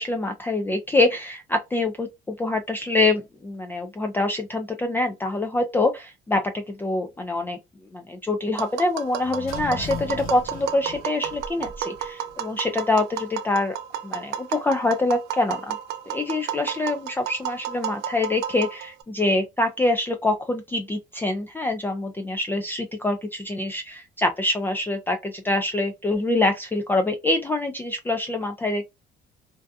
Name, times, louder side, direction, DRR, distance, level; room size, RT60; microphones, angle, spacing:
voice 1, 0.0-7.6 7.9-13.8 14.0-15.8 16.1-28.9, left 2 dB, 10° left, 0.3 m, -25 dB
Tap, 8.6-19.0, right 10 dB, 85° right, 0.5 m, -32 dB
sound 1, 9.2-12.0 12.3-12.4, left 3 dB, 65° left, 1.0 m, -37 dB
2.6 x 2.3 x 2.3 m
cardioid pair, 110°, 17 cm